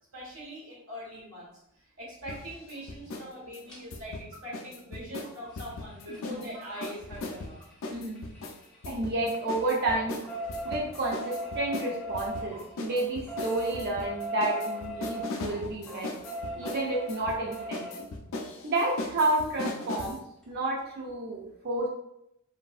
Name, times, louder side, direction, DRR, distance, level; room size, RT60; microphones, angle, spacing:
voice 1, 0.1-1.5 2.0-7.6, equal, 80° right, -5 dB, 1.4 m, -42 dB
sound 1, 2.3-3.3 3.5-6.5 6.8-20.2, left 2 dB, 65° left, 0.4 m, -39 dB
sound 2, 3.7-3.8 5.4-9.0 9.3-18.0 19.7-19.8 20.0-20.1 20.4-20.5, right 1 dB, 5° left, 0.6 m, -39 dB
voice 2, 6.1-6.7 7.9-8.2 8.8-10.2 10.6-16.1 16.6-18.1 18.6-20.2 20.5-21.9, right 2 dB, 45° right, -2 dB, 0.4 m, -30 dB
3.0 x 2.6 x 2.3 m, 0.78 s
head